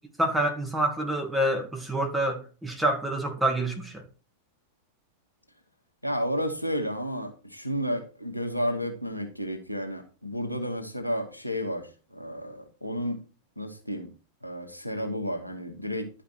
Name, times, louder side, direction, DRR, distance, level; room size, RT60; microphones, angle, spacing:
voice 1, 0.2-4.1, right 1 dB, 5° right, 2.0 m, -27 dB
voice 2, 6.0-13.2 13.6-14.1 14.4-16.1, equal, 90° left, 1.4 m, -32 dB
11.0 x 5.0 x 4.5 m
figure-of-eight pair, 90°, 0 cm